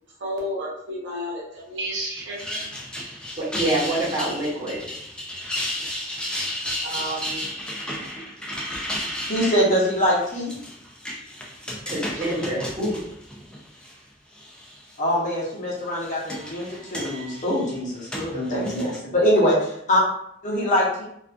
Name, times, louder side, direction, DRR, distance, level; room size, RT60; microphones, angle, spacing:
voice 1, 0.2-2.7 6.8-7.4 12.2-12.6 12.9-13.0, equal, 75° right, -3 dB, 0.8 m, -31 dB
sound 1, 2.2-13.9 14.4-14.9 15.8-19.0, left 1 dB, 5° left, 0.3 m, -33 dB
voice 2, 3.4-4.8 11.9-12.9, right 1 dB, 30° right, -10 dB, 0.8 m, -26 dB
voice 3, 9.3-10.5 15.0-20.0 20.4-21.0, equal, 40° left, -4 dB, 0.8 m, -23 dB
2.4 x 2.3 x 2.4 m, 0.71 s
head